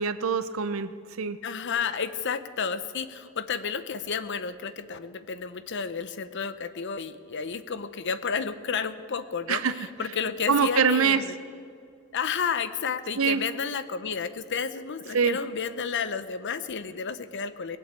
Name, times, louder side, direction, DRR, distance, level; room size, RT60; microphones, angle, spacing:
voice 1, 0.0-1.4 9.5-9.7 10.5-11.2 13.2-13.4 15.1-15.4, right 6 dB, 75° right, 13 dB, 0.7 m, -24 dB
voice 2, 1.4-11.3 12.1-17.8, left 6 dB, 60° left, 13 dB, 0.7 m, -31 dB
19.5 x 8.2 x 8.2 m, 2.3 s
head